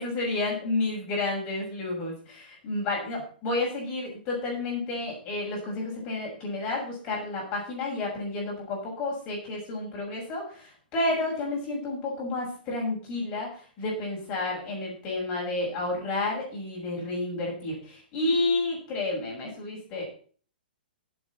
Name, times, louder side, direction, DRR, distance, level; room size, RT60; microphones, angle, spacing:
voice 1, 0.0-20.0, left 2 dB, 20° left, -2 dB, 6.5 m, -31 dB
17.0 x 8.0 x 4.2 m, 0.42 s
hypercardioid pair, 175°, 5 cm